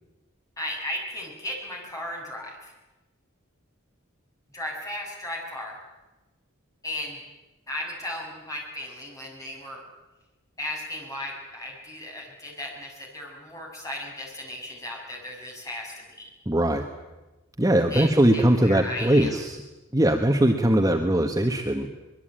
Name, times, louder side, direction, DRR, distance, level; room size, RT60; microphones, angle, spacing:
voice 1, 0.6-2.7 4.5-5.8 6.8-7.2 7.7-9.8 10.6-16.3 17.9-19.4, left 1 dB, 15° left, -1 dB, 7.0 m, -35 dB
voice 2, 16.5-16.8 17.6-19.6 19.9-21.9, right 1 dB, 15° right, 3 dB, 1.4 m, -21 dB
24.0 x 22.0 x 8.9 m, 1.1 s
head